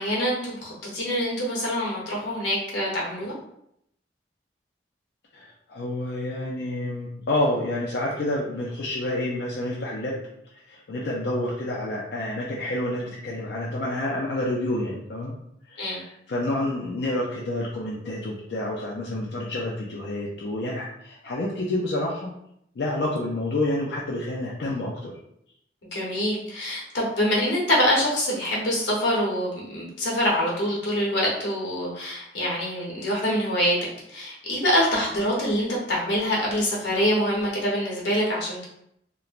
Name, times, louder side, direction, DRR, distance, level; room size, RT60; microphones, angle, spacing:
voice 1, 0.0-3.3 15.8-16.0 25.9-33.8 34.1-38.6, equal, 85° left, -4 dB, 1.0 m, -25 dB
voice 2, 5.3-10.2 10.7-15.3 15.7-22.3 22.8-25.1, left 1 dB, 70° left, -4 dB, 0.4 m, -29 dB
2.9 x 2.1 x 2.4 m, 0.74 s
head